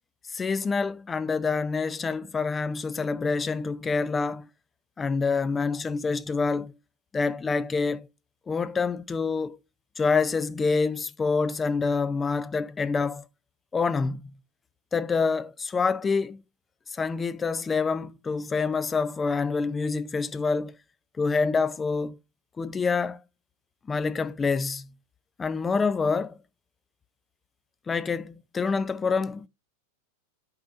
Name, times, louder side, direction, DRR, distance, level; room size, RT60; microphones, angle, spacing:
voice 1, 0.3-4.5 5.0-6.7 7.1-8.1 8.5-9.6 10.0-13.2 13.7-14.4 14.9-16.4 16.9-20.8 21.2-22.2 22.6-23.2 23.9-24.9 25.4-26.4 27.9-29.5, left 4 dB, 15° left, 0.4 m, -27 dB
12.0 x 5.2 x 2.4 m
figure-of-eight pair, 90°, 0 cm